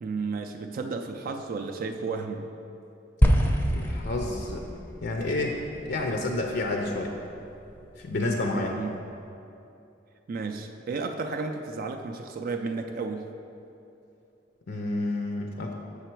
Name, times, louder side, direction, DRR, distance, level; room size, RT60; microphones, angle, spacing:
voice 1, 0.0-2.5 8.5-9.0 10.3-13.3, right 4 dB, 45° right, 5 dB, 0.3 m, -33 dB
sound 1, 3.2-7.6, equal, 10° left, 0.5 m, -27 dB
voice 2, 3.7-4.7 5.0-7.1 8.0-8.8 14.7-15.7, left 2 dB, 60° left, 2 dB, 0.5 m, -29 dB
6.8 x 5.6 x 4.5 m, 2.8 s
head